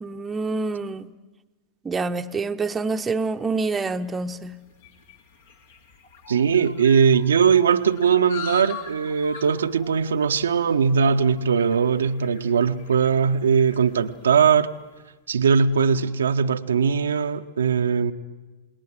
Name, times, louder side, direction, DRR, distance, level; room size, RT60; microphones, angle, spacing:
voice 1, 0.0-1.1 1.8-4.6, right 3 dB, 15° right, 0.9 m, -27 dB
sound 1, 4.1-14.7, left 5 dB, 65° left, 2.5 m, -43 dB
voice 2, 6.3-14.7 15.3-18.1, right 6 dB, 70° right, 0.8 m, -20 dB
28.0 x 20.0 x 9.2 m
figure-of-eight pair, 90°, 0 cm